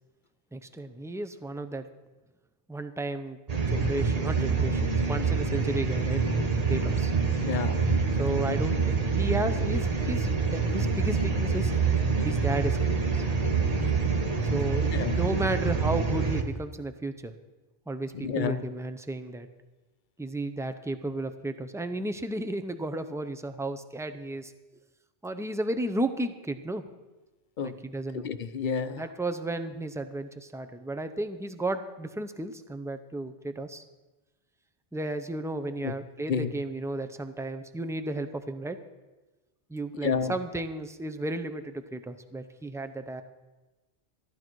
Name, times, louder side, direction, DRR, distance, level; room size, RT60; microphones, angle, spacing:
voice 1, 0.5-1.9 2.7-3.4 3.7-6.2 6.7-7.1 8.2-11.7 12.2-13.2 14.5-17.3 17.9-19.5 20.2-24.5 25.2-26.8 27.6-28.3 28.9-33.8 34.9-38.8 39.7-43.2, right 2 dB, 5° right, 8 dB, 0.4 m, -33 dB
sound 1, 3.5-16.4, right 4 dB, 40° right, 1.1 m, -26 dB
voice 2, 7.4-7.9 14.8-15.2 18.1-18.6 27.6-27.7 28.1-29.0 35.8-36.0 36.3-36.5 40.0-40.3, left 6 dB, 55° left, 11 dB, 0.8 m, -30 dB
14.5 x 11.5 x 4.6 m, 1.2 s
omnidirectional pair, 1.0 m